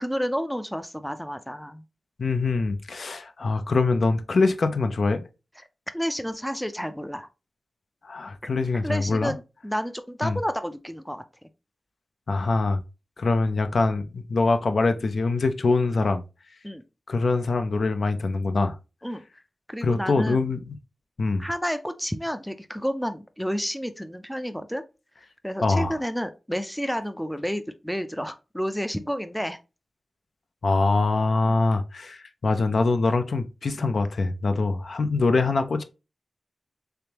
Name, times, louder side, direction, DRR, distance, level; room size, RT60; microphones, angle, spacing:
voice 1, 0.0-1.8 5.9-7.3 8.7-11.2 16.6-16.8 19.0-19.2 19.7-20.4 21.4-24.8 25.4-29.6 31.4-31.6, equal, 5° left, 0.4 m, -30 dB
voice 2, 2.2-5.2 8.0-9.3 10.2-10.4 12.3-12.8 13.2-16.2 17.1-18.8 19.8-20.8 21.2-21.5 25.6-26.0 30.6-35.8, left 3 dB, 65° left, 0.4 m, -24 dB
3.4 x 3.4 x 2.8 m
wide cardioid pair, 100°, 0 cm